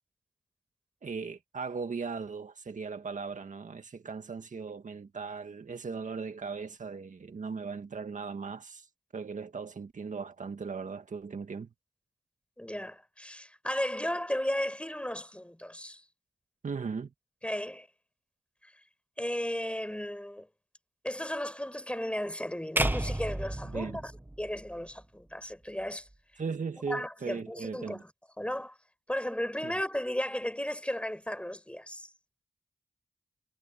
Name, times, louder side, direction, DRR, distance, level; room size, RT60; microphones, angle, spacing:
voice 1, 1.0-8.9 9.1-11.7 16.6-17.1 23.6-24.0 26.4-28.0 29.6-29.7, right 5 dB, 70° right, 1.9 m, -38 dB
voice 2, 12.6-16.0 17.4-17.9 18.6-18.7 19.2-20.5 21.0-24.1 24.4-26.1 26.9-28.0 28.4-28.8 29.1-32.1, left 1 dB, 10° left, 5.4 m, -35 dB
sound 1, 22.8-25.0, right 1 dB, 15° right, 1.4 m, -32 dB
cardioid pair, 45°, 14 cm